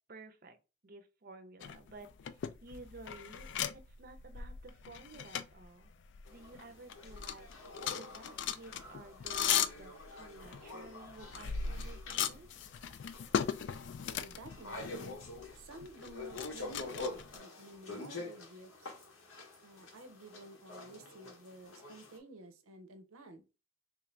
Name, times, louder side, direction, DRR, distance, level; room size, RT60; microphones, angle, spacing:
voice 1, 0.1-0.6 0.8-5.9 6.3-7.5 7.9-12.5, right 2 dB, 45° right, 0.5 m, -53 dB
sound 1, 1.6-6.6 6.9-17.4, left 8 dB, 60° left, 0.3 m, -38 dB
sound 2, 6.3-22.2, left 2 dB, 75° left, 0.9 m, -47 dB
voice 2, 14.1-15.2 15.6-18.9 19.6-23.5, right 2 dB, 90° right, 0.6 m, -53 dB
3.5 x 2.5 x 3.2 m
head